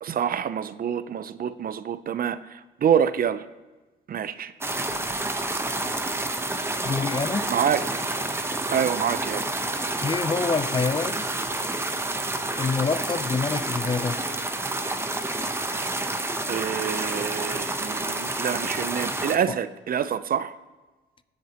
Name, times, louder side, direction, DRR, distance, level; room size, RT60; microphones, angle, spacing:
voice 1, 0.0-3.5 4.1-4.5 7.5-7.8 8.7-9.4 16.5-20.6, right 8 dB, 45° right, 14 dB, 0.5 m, -26 dB
sound 1, 4.6-19.4, right 2 dB, 10° right, 0.8 m, -29 dB
voice 2, 6.8-7.5 10.0-11.3 12.6-14.2 19.5-19.6, left 4 dB, 25° left, 14 dB, 0.5 m, -26 dB
20.5 x 7.3 x 2.9 m, 1.2 s
cardioid pair, 90°, 20 cm